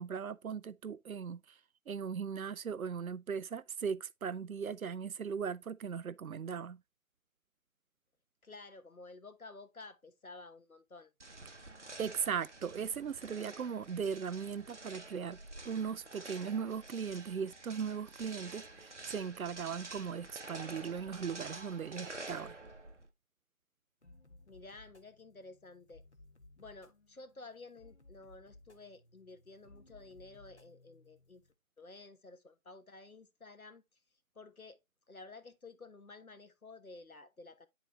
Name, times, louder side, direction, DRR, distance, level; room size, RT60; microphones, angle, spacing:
voice 1, 0.0-1.6 1.9-6.8 12.0-15.4 15.6-22.5, right 6 dB, 80° right, 0.5 m, -38 dB
voice 2, 8.4-11.1 24.5-26.0 26.6-31.4 31.8-33.8 34.3-34.8 35.1-37.7, left 3 dB, 85° left, 1.1 m, -52 dB
sound 1, 11.2-23.1, right 2 dB, 55° right, 0.8 m, -49 dB
sound 2, 24.0-31.5, left 2 dB, 55° left, 1.0 m, -61 dB
10.0 x 4.1 x 2.9 m
figure-of-eight pair, 180°, 42 cm